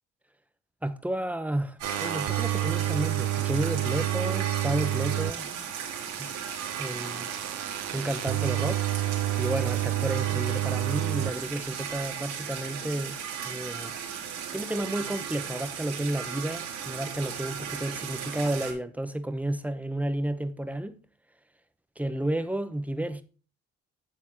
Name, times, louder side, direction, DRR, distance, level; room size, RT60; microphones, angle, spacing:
voice 1, 0.8-5.5 6.2-6.3 6.8-7.3 7.9-8.8 9.4-13.2 13.4-13.9 14.5-21.0 22.0-23.2, right 1 dB, 5° right, 1.1 m, -31 dB
sound 1, 1.8-5.3 5.6-11.3 11.6-12.1, right 13 dB, 60° right, 0.6 m, -30 dB
sound 2, 1.8-18.7, right 7 dB, 85° right, 3.3 m, -36 dB
10.0 x 7.1 x 3.1 m
cardioid pair, 90°, 30 cm